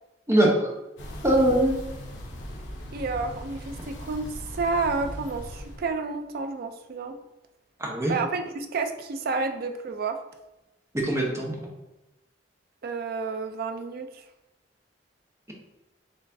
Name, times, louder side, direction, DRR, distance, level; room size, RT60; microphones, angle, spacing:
voice 1, 0.3-0.7 1.2-1.7 7.8-8.1 10.9-11.5, right 1 dB, 15° right, -1 dB, 0.8 m, -22 dB
sound 1, 1.0-5.9, equal, 80° left, 0.8 m, -39 dB
voice 2, 2.9-7.2 8.1-10.2 12.8-14.2, right 4 dB, 55° right, 7 dB, 0.4 m, -30 dB
4.4 x 3.1 x 2.6 m, 0.96 s
head